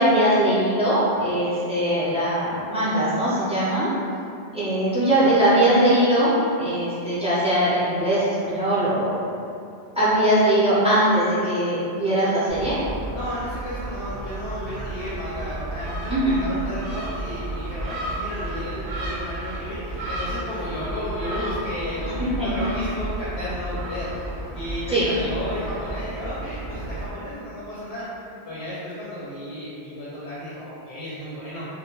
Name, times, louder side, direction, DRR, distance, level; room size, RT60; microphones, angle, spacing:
voice 1, 0.0-3.9 4.5-6.3 6.6-9.2 10.0-12.8 16.1-16.4 22.0-22.5 24.9-25.1, right 1 dB, 10° right, -12 dB, 0.5 m, -21 dB
Gull seagull, 12.5-27.1, right 2 dB, 70° right, 0.8 m, -32 dB
voice 2, 13.1-31.7, left 1 dB, 80° left, -9 dB, 0.8 m, -33 dB
2.2 x 2.1 x 2.8 m, 2.6 s
omnidirectional pair, 1.1 m